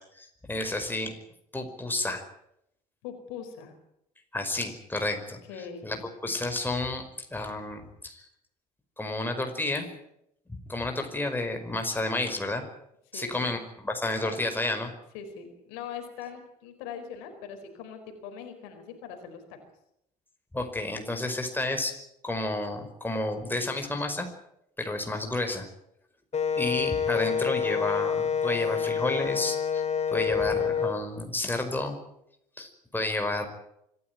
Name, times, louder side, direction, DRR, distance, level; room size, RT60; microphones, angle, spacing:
voice 1, 0.2-1.1 1.5-2.2 4.3-5.4 5.8-8.3 9.0-9.8 10.5-12.6 13.1-14.9 20.5-21.9 22.2-24.3 24.8-25.7 26.5-32.0 32.6-33.5, left 2 dB, 10° left, 4 dB, 5.1 m, -31 dB
voice 2, 3.0-3.8 5.5-5.9 13.1-13.5 14.2-14.3 15.1-19.6, left 7 dB, 65° left, 6 dB, 4.5 m, -41 dB
Wind instrument woodwind instrument, 26.3-31.0, left 6 dB, 35° left, 3.7 m, -27 dB
25.5 x 15.0 x 9.3 m, 0.78 s
figure-of-eight pair, 55°, 20 cm